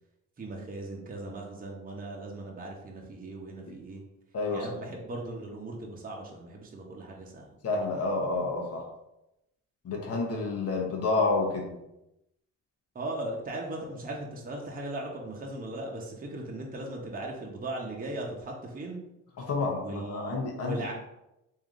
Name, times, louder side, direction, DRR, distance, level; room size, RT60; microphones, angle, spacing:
voice 1, 0.4-4.0 4.5-7.5 12.9-19.0 19.8-20.9, right 2 dB, 30° right, -1 dB, 0.8 m, -38 dB
voice 2, 4.3-4.8 7.6-8.8 9.8-11.7 19.4-20.8, left 3 dB, 55° left, 0 dB, 0.9 m, -29 dB
3.6 x 2.7 x 3.6 m, 0.89 s
cardioid pair, 90°, 30 cm